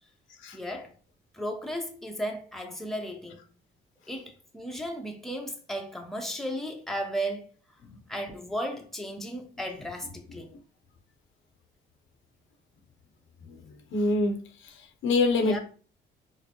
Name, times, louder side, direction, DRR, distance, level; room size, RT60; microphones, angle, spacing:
voice 1, 0.5-0.9 1.3-3.5 4.1-7.5 8.1-10.5 15.4-15.6, equal, ahead, 0.7 m, -35 dB
voice 2, 13.9-14.4 14.6-14.7 15.0-15.6, left 3 dB, 80° left, 0.9 m, -24 dB
4.8 x 2.1 x 3.0 m
cardioid pair, 90°, 20 cm